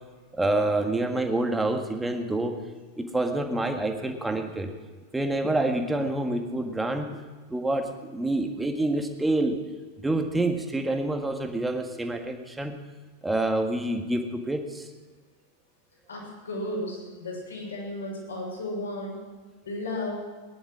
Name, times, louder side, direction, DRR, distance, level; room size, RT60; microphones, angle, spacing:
voice 1, 0.3-2.6 3.0-4.7 5.1-7.2 7.5-9.6 10.0-12.8 13.2-14.9, right 2 dB, 5° right, 4 dB, 1.8 m, -27 dB
voice 2, 16.1-19.2 19.6-20.2, left 1 dB, 70° left, -2 dB, 6.6 m, -34 dB
19.5 x 11.5 x 6.3 m, 1.4 s
figure-of-eight pair, 90°, 0 cm